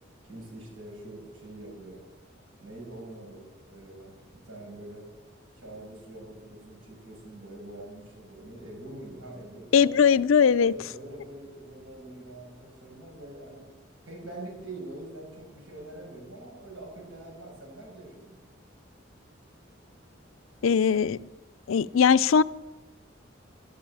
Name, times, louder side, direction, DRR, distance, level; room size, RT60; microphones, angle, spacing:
voice 1, 0.2-2.0 2.6-4.1 4.4-5.0 5.5-9.7 10.6-13.7 14.0-18.4, right 1 dB, 90° right, -2 dB, 6.6 m, -44 dB
voice 2, 9.7-10.7 20.6-21.2 21.7-22.4, left 6 dB, 90° left, 17 dB, 0.4 m, -20 dB
13.0 x 11.5 x 8.6 m, 1.1 s
head